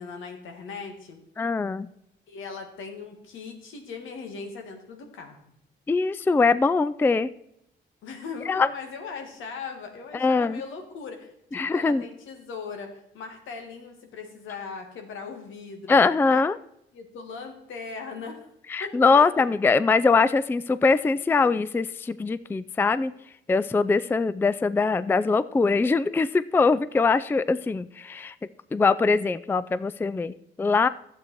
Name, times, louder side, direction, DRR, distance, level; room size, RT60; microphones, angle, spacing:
voice 1, 0.0-1.2 2.3-5.4 8.0-16.0 16.2-16.4 16.9-18.5 18.8-19.5, left 5 dB, 80° left, 5 dB, 1.9 m, -39 dB
voice 2, 1.4-1.9 5.9-7.3 8.5-8.7 10.1-10.6 11.5-12.0 15.9-16.6 18.7-23.1 23.5-28.3 28.7-30.9, left 4 dB, 10° left, 16 dB, 0.3 m, -22 dB
12.0 x 7.8 x 4.5 m, 0.78 s
cardioid pair, 90°, 20 cm